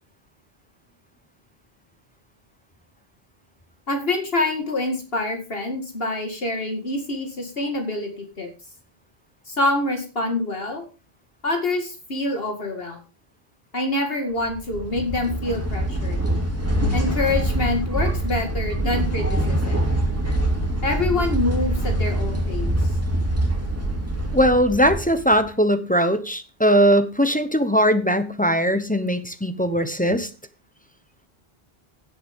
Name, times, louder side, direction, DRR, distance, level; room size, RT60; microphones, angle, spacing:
voice 1, 3.9-8.5 9.5-10.8 11.4-13.0 13.7-16.2 16.9-19.8 20.8-22.9, left 2 dB, 65° left, 4 dB, 2.3 m, -26 dB
sound 1, 14.5-25.5, right 1 dB, 15° right, 2.5 m, -24 dB
voice 2, 24.3-30.3, equal, 10° left, 9 dB, 0.8 m, -20 dB
16.5 x 7.9 x 3.6 m, 0.34 s
omnidirectional pair, 1.0 m